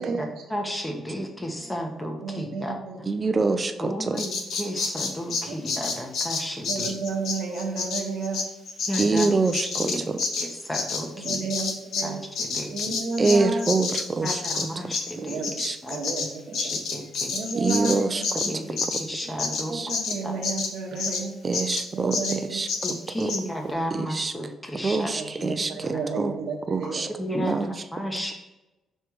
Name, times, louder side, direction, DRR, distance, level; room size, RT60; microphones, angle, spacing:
voice 1, 0.2-2.8 3.8-6.9 8.9-9.3 9.6-10.0 10.4-11.5 12.0-12.9 14.2-15.4 15.8-16.0 16.6-17.3 18.3-20.0 20.2-20.3 22.8-25.1 25.4-25.6 25.8-26.0 26.8-28.3, equal, 10° left, 2 dB, 1.1 m, -33 dB
voice 2, 2.2-3.0 6.7-8.4 9.0-9.3 11.2-12.2 12.7-13.6 15.2-16.7 17.3-18.3 19.2-21.3 21.9-22.6 25.2-27.1, right 4 dB, 70° right, 0 dB, 1.0 m, -32 dB
voice 3, 3.1-4.2 9.0-10.2 13.2-14.4 15.6-15.8 17.5-18.4 19.7-19.9 21.4-22.7 23.2-23.3 23.9-24.3 24.8-26.4 26.7-27.1 27.3-27.7, right 3 dB, 30° right, 9 dB, 0.5 m, -25 dB
Bird vocalization bird call bird song, 4.2-12.1 12.3-21.2 21.5-21.9 22.1-22.4 22.7-23.0 23.3-23.4, left 4 dB, 70° left, 0.9 m, -29 dB
6.4 x 3.3 x 4.6 m, 1.0 s
cardioid pair, 90°, 0 cm